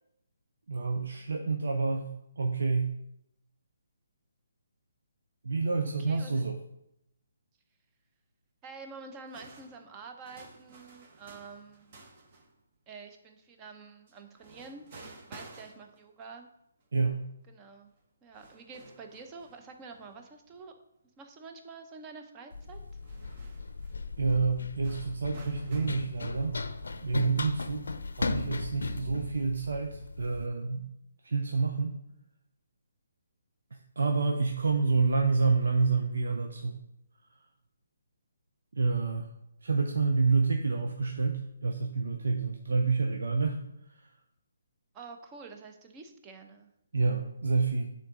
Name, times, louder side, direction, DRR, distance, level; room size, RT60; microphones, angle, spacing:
voice 1, 0.7-2.9 5.4-6.6 16.9-17.3 24.2-26.6 27.0-27.9 28.2-30.9 31.2-32.0 33.7-36.8 38.7-39.3 39.6-43.6 43.9-44.1 46.9-47.9, right 4 dB, 75° right, 3 dB, 0.7 m, -28 dB
voice 2, 5.8-6.4 8.6-11.9 12.9-14.9 15.2-16.5 17.5-17.9 18.2-20.7 21.2-22.8 44.9-46.7, right 4 dB, 20° right, 5 dB, 0.7 m, -48 dB
sound 1, 9.3-12.6 14.1-16.2 16.8-16.9 18.0-18.1 18.3-20.6 21.0-21.1 22.9-24.0 24.8-25.9, right 3 dB, 35° right, 1.1 m, -53 dB
Run, 22.5-30.5, left 3 dB, 85° left, 0.6 m, -37 dB
9.1 x 3.8 x 3.8 m, 0.79 s
hypercardioid pair, 160°, 0 cm